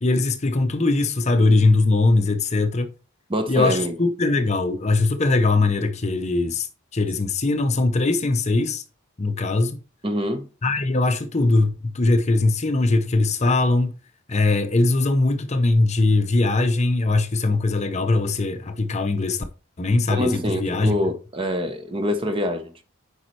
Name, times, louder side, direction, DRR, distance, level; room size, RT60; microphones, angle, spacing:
voice 1, 0.0-2.9 3.5-8.8 9.2-9.8 10.6-14.0 14.3-19.4 19.8-20.9, left 2 dB, 30° left, 0.6 m, -21 dB
voice 2, 3.3-3.9 10.0-10.5 20.1-22.8, equal, 25° right, 0.8 m, -25 dB
8.3 x 5.3 x 3.2 m
head